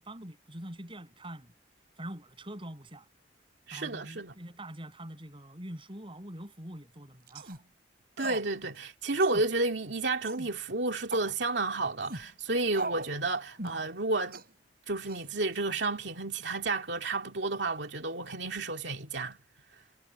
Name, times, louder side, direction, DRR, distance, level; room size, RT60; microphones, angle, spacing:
voice 1, 0.0-1.5 2.0-3.1 3.7-7.6, right 1 dB, 30° right, 7.5 m, -44 dB
voice 2, 3.7-4.3 8.2-14.4 14.9-19.4, right 3 dB, 85° right, 2.3 m, -31 dB
sound 1, 7.3-7.6 8.2-8.5 8.8-8.9 9.2-9.5 10.2-10.5 11.1-11.3 12.0-12.3 12.7-13.1 13.6-13.8 14.3-14.5 15.1-15.6, right 2 dB, 60° right, 4.4 m, -39 dB
head